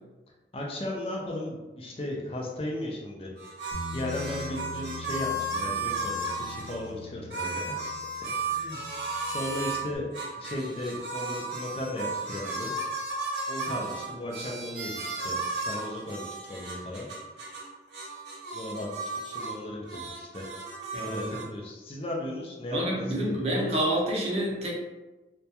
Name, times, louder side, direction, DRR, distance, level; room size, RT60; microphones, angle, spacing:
voice 1, 0.5-3.3 3.9-7.8 8.4-12.7 13.5-17.1 18.5-20.5 21.0-23.4, left 1 dB, 30° left, -2 dB, 0.4 m, -36 dB
sound 1, 3.4-6.8 7.3-9.8 10.1-17.7 17.9-19.6 19.8-21.4, right 2 dB, 70° right, 0.8 m, -34 dB
Bass guitar, 3.7-10.0, left 3 dB, 75° left, 0.6 m, -43 dB
voice 2, 20.9-21.4 22.7-24.7, right 1 dB, 35° right, -3 dB, 0.6 m, -28 dB
2.2 x 2.2 x 2.8 m, 1.1 s
head